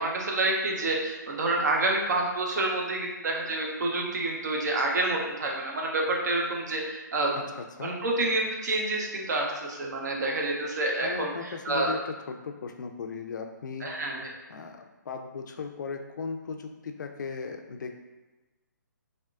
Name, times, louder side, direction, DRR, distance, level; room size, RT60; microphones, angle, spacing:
voice 1, 0.0-7.5 7.8-11.9 13.8-14.3, right 2 dB, 60° right, 0 dB, 0.7 m, -28 dB
voice 2, 11.0-13.9 14.5-17.9, left 5 dB, 70° left, 5 dB, 0.4 m, -37 dB
3.4 x 2.4 x 2.4 m, 1.1 s
hypercardioid pair, 155°, 10 cm